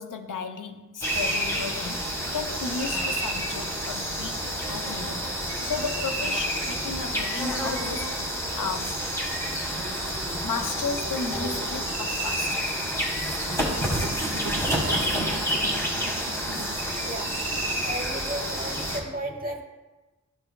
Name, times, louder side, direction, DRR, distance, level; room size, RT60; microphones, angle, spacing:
voice 1, 0.0-4.4 4.7-5.3 5.6-8.2 8.5-9.1 10.4-12.7 18.3-18.4, left 4 dB, 90° left, 6 dB, 0.6 m, -34 dB
sound 1, 1.0-19.0, equal, 10° left, 1.4 m, -29 dB
sound 2, 13.6-18.7, right 3 dB, 80° right, 0.5 m, -40 dB
voice 2, 17.8-19.6, right 1 dB, 30° right, 2 dB, 1.0 m, -34 dB
11.5 x 4.5 x 2.2 m, 1.2 s
wide cardioid pair, 85°, 31 cm